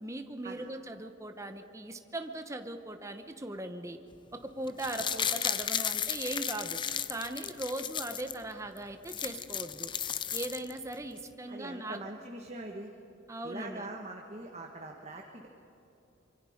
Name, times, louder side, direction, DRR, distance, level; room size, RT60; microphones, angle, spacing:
voice 1, 0.0-4.0 4.3-6.8 7.1-9.9 10.3-12.0 13.3-13.9, right 1 dB, 15° right, 7 dB, 0.9 m, -39 dB
sound 1, 4.7-8.4 8.8-8.9 9.0-10.9 11.3-11.4, left 8 dB, 25° left, 0.5 m, -34 dB
voice 2, 11.5-12.9 13.4-15.5, right 2 dB, 35° right, 1 dB, 1.4 m, -43 dB
25.5 x 24.0 x 5.1 m, 3.0 s
head